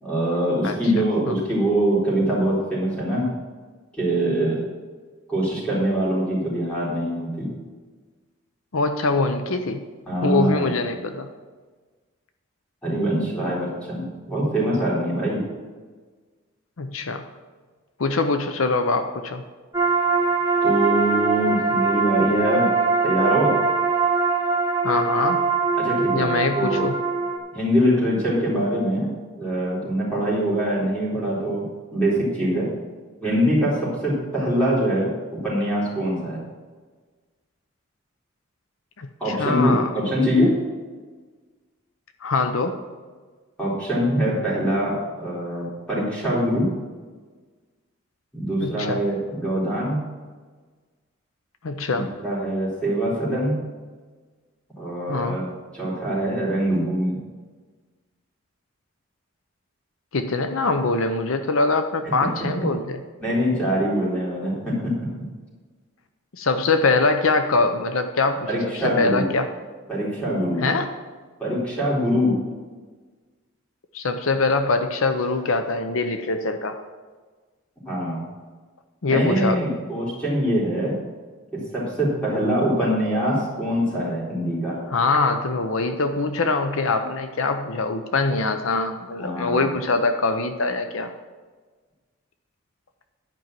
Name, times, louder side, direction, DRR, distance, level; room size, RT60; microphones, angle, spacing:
voice 1, 0.0-3.3 3.9-4.6 5.3-7.5 10.1-10.7 12.8-15.5 20.6-22.7 23.0-23.6 25.8-26.3 26.6-26.9 27.5-29.1 29.4-32.7 33.2-36.4 39.2-40.5 43.6-46.7 48.3-50.0 51.9-53.6 54.8-57.2 62.0-62.1 63.2-65.0 68.5-69.3 69.9-70.6 71.4-72.3 77.9-78.2 79.1-80.9 81.5-84.8 89.2-89.6, equal, 5° left, -7 dB, 3.8 m, -23 dB
voice 2, 0.6-1.4 8.7-9.8 10.2-11.3 16.8-17.2 18.0-19.4 24.8-25.4 26.1-27.0 39.0-39.9 42.2-42.8 48.6-49.0 51.6-52.1 55.1-55.5 60.1-63.0 66.3-69.5 70.6-70.9 73.9-76.8 79.0-79.7 84.9-91.1, left 3 dB, 80° left, 8 dB, 0.7 m, -23 dB
sound 1, 19.7-27.4, right 4 dB, 10° right, 1.2 m, -22 dB
10.5 x 5.4 x 7.5 m, 1.4 s
head